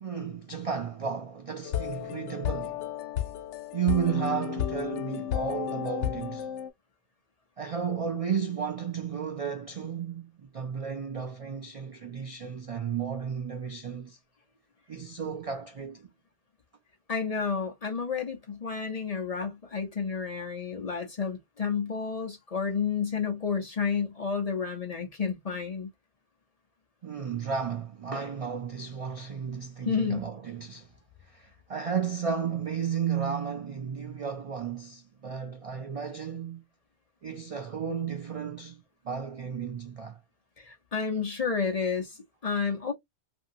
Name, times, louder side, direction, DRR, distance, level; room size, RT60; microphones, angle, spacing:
voice 1, 0.0-2.9 3.7-6.5 7.6-14.2 14.9-16.1 27.0-30.9 31.2-36.7 37.2-40.2, right 7 dB, 50° right, 0.4 m, -33 dB
sound 1, 1.6-6.7, left 10 dB, 80° left, 0.9 m, -33 dB
voice 2, 17.1-25.9 29.9-30.3 40.6-42.9, left 6 dB, 40° left, 0.6 m, -31 dB
2.7 x 2.7 x 2.6 m
omnidirectional pair, 1.2 m